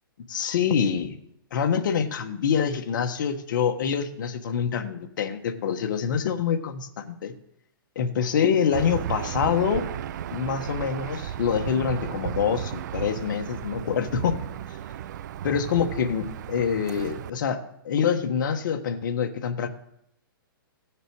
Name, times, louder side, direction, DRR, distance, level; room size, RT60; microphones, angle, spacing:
voice 1, 0.3-1.2 1.5-7.3 7.9-9.8 10.3-14.4 15.4-17.6 17.8-19.7, left 7 dB, 55° left, 6 dB, 1.3 m, -26 dB
Aircraft / Engine, 8.7-17.3, right 10 dB, 50° right, 0.4 m, -34 dB
17.0 x 6.7 x 4.7 m, 0.76 s
hypercardioid pair, 150°, 12 cm